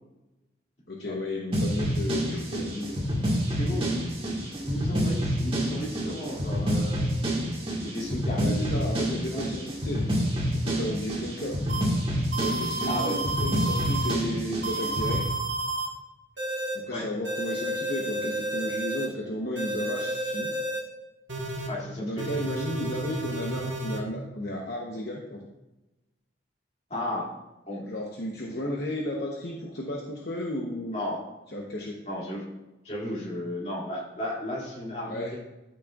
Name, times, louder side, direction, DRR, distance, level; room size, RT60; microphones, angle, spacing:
voice 1, 0.9-3.2 8.4-10.1 10.5-11.6 12.4-15.3 16.7-20.5 22.0-25.5 27.8-31.0 31.5-32.0 35.1-35.4, left 1 dB, 55° left, -2 dB, 0.9 m, -34 dB
sound 1, 1.5-15.2, equal, 30° right, 1.6 m, -28 dB
voice 2, 3.6-3.9 4.3-7.0 7.8-8.8 9.3-9.5 12.9-13.2 16.9-17.1 21.7-22.3 26.9-27.3 27.7-27.8 30.9-31.2 32.1-32.4 32.8-35.4, left 1 dB, 35° left, -5 dB, 2.4 m, -34 dB
sound 2, 11.7-11.8 12.3-14.1 14.6-15.9 16.4-16.7 17.2-19.1 19.6-20.8 21.3-21.7 22.2-24.0, right 1 dB, 85° right, 1.6 m, -31 dB
12.5 x 6.1 x 2.4 m, 1.0 s
head